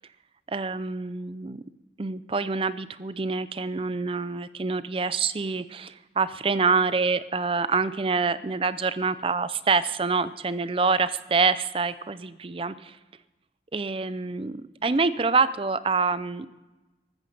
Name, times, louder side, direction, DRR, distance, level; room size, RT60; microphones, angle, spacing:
voice 1, 0.5-1.6 2.0-13.0 13.7-16.5, right 4 dB, 30° right, 15 dB, 0.5 m, -26 dB
14.5 x 13.5 x 5.3 m, 1.1 s
head